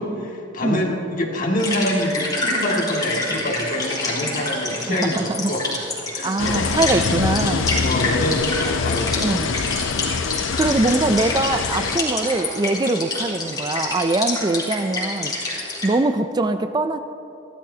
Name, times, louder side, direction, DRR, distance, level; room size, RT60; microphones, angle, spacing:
voice 1, 0.0-5.7 6.1-6.7 7.8-10.1 10.7-10.8, left 1 dB, 40° left, -1 dB, 2.1 m, -26 dB
sound 1, 1.6-15.9, left 2 dB, 20° left, 3.6 m, -27 dB
voice 2, 4.9-5.5 6.2-7.8 9.2-9.5 10.5-15.3 15.8-17.0, right 2 dB, 20° right, 9 dB, 0.4 m, -22 dB
sound 2, 6.4-12.0, left 5 dB, 65° left, 0.5 m, -25 dB
30.0 x 12.5 x 2.8 m, 2.9 s
head